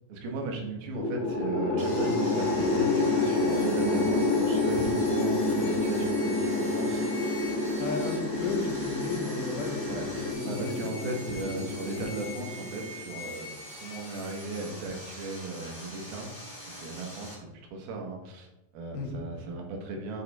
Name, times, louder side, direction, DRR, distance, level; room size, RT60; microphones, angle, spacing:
voice 1, 0.1-7.1 9.8-16.3 16.7-18.5 18.7-20.2, right 3 dB, 80° right, 1 dB, 3.3 m, -36 dB
sound 1, 0.9-13.3, left 2 dB, 55° left, 2.0 m, -28 dB
Sawing, 1.8-17.3, left 1 dB, 15° left, 1.0 m, -44 dB
sound 2, 2.4-10.3, equal, 35° right, 1.6 m, -46 dB
voice 2, 7.8-10.7 18.9-19.1, left 4 dB, 85° left, 2 dB, 3.1 m, -34 dB
8.5 x 5.0 x 4.2 m, 0.94 s
omnidirectional pair, 4.3 m